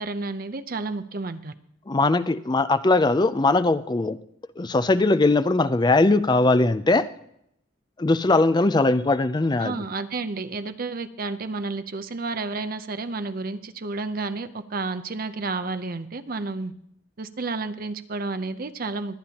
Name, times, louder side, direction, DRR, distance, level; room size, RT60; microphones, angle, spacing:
voice 1, 0.0-1.5 9.6-16.7 17.2-19.2, right 3 dB, 45° right, 11 dB, 0.6 m, -31 dB
voice 2, 1.9-4.2 4.6-7.1 8.0-9.8, left 2 dB, 20° left, 13 dB, 0.4 m, -20 dB
23.0 x 8.7 x 2.9 m, 0.75 s
head